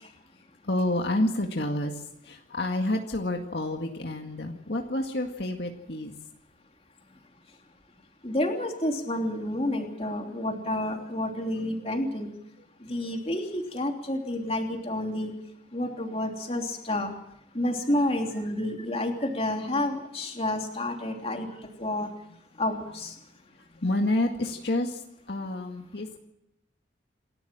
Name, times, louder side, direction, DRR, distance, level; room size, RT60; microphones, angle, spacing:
voice 1, 0.6-6.1 23.7-25.0 25.3-26.1, left 1 dB, 60° left, 3 dB, 2.0 m, -29 dB
voice 2, 8.2-12.3 12.9-15.3 15.7-17.1 17.5-21.5 21.8-22.1 22.6-23.1, left 1 dB, 30° left, 3 dB, 3.1 m, -29 dB
28.5 x 13.0 x 7.6 m, 0.82 s
head